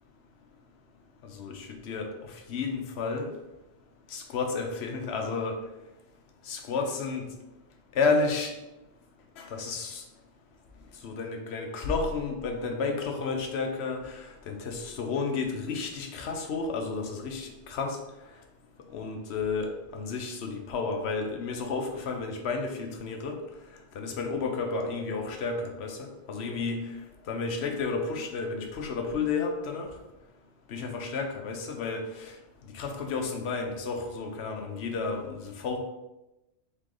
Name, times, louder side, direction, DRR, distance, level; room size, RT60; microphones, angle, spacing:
voice 1, 1.4-2.1 2.5-3.3 4.1-5.6 6.5-7.3 8.0-8.5 9.4-10.0 11.0-14.0 14.5-18.0 18.9-23.4 24.0-26.8 27.3-29.9 30.7-32.0 32.7-35.8, left 4 dB, 70° left, 3 dB, 0.9 m, -31 dB
3.8 x 3.3 x 3.7 m, 0.98 s
omnidirectional pair, 1.2 m